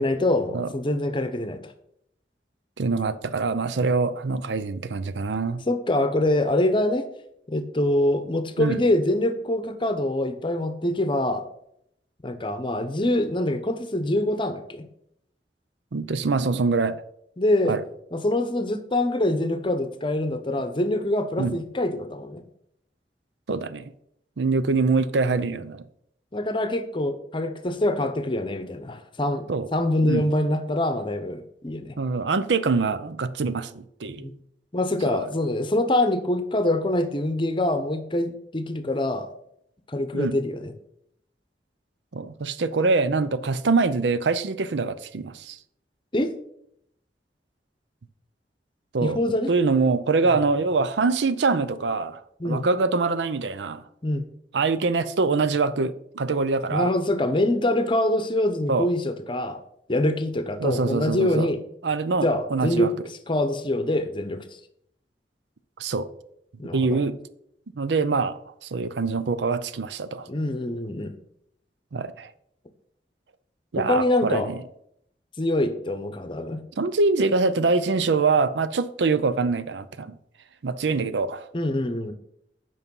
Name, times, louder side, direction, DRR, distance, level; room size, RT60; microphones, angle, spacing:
voice 1, 0.0-1.6 5.7-7.1 7.5-11.4 12.2-14.9 17.4-17.8 18.1-22.4 26.3-31.9 34.2-34.3 34.7-39.3 39.9-40.7 46.1-46.3 49.0-49.5 52.4-52.7 54.0-54.2 56.7-59.6 59.9-61.6 62.2-62.9 63.3-64.4 66.6-67.0 70.3-71.1 73.8-74.5 75.4-76.6 81.5-82.1, left 1 dB, 30° left, 0.8 m, -25 dB
voice 2, 2.8-5.6 8.6-8.8 15.9-17.0 17.7-17.8 21.4-21.6 23.5-23.9 24.4-25.8 29.5-29.7 30.0-30.3 32.0-34.3 35.1-35.3 40.1-40.4 42.1-45.6 48.9-49.2 49.5-53.8 54.5-56.9 58.7-58.9 60.6-61.5 61.8-62.9 65.8-66.1 66.7-67.1 67.7-70.3 71.9-72.3 73.7-74.6 76.8-80.2 80.6-81.5, right 4 dB, 85° right, 0.6 m, -24 dB
8.4 x 5.5 x 5.4 m
head